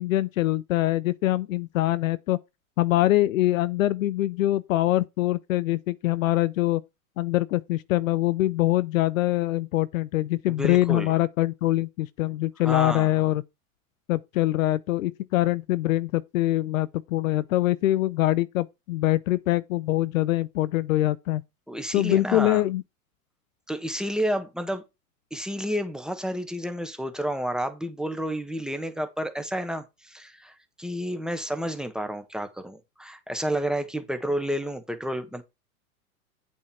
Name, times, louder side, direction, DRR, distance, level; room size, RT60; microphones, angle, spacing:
voice 1, 0.0-2.4 2.8-6.8 7.2-13.4 14.1-21.4 21.9-22.8, left 15 dB, 65° left, 0.7 m, -24 dB
voice 2, 10.5-11.1 12.6-13.2 21.7-22.6 23.7-24.8 25.3-35.4, equal, ahead, 1.5 m, -30 dB
8.5 x 4.6 x 5.6 m
hypercardioid pair, 100°, 44 cm